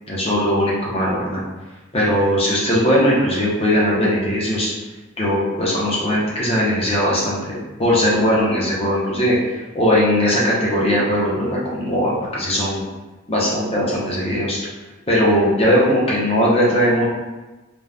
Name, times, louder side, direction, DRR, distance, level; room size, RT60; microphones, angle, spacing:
voice 1, 0.1-1.4 1.9-4.7 5.2-9.4 9.7-12.8 13.3-14.6 15.1-17.0, equal, 30° left, -6 dB, 0.7 m, -19 dB
2.5 x 2.2 x 3.3 m, 1.2 s
head